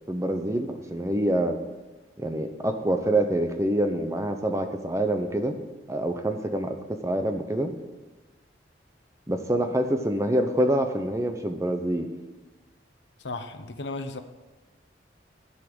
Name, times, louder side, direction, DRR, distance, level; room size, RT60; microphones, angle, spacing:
voice 1, 0.1-1.6 2.2-5.6 5.9-7.7 9.3-12.1, right 1 dB, 15° right, 6 dB, 0.8 m, -26 dB
voice 2, 13.2-14.2, left 3 dB, 70° left, 8 dB, 0.9 m, -35 dB
12.5 x 5.6 x 7.9 m, 1.2 s
head